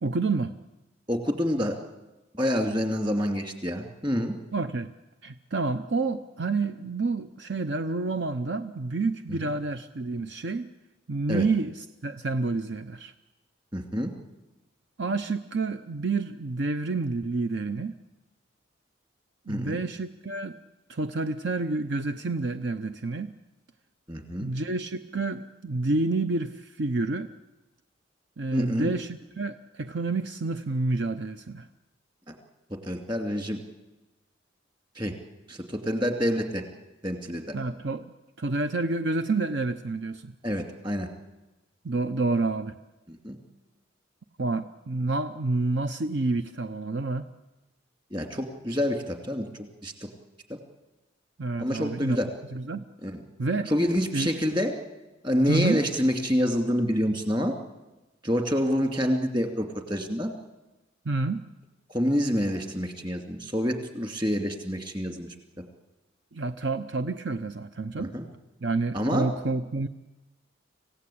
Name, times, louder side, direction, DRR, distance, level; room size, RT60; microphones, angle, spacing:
voice 1, 0.0-0.5 4.5-4.9 5.2-10.7 11.1-13.1 15.0-18.0 19.5-20.6 20.9-23.3 24.4-27.3 28.4-31.7 37.5-38.1 38.4-40.3 41.8-42.8 44.4-47.3 51.4-52.2 52.5-52.9 53.4-53.7 54.1-54.3 55.5-55.8 61.0-61.4 66.3-68.1 68.6-69.9, right 3 dB, 60° right, 10 dB, 0.7 m, -29 dB
voice 2, 1.1-1.8 2.3-4.3 11.3-11.5 13.7-14.1 19.5-19.8 24.1-24.5 28.5-28.9 32.8-33.6 35.0-35.1 35.5-36.6 37.0-37.5 40.4-41.1 43.2-43.4 48.1-49.5 49.8-49.9 51.6-52.3 53.0-53.2 53.7-54.7 55.2-57.6 58.2-60.3 61.9-65.3 68.0-68.3 68.9-69.3, equal, 25° right, 4 dB, 2.5 m, -27 dB
26.0 x 16.0 x 8.6 m, 1.0 s
head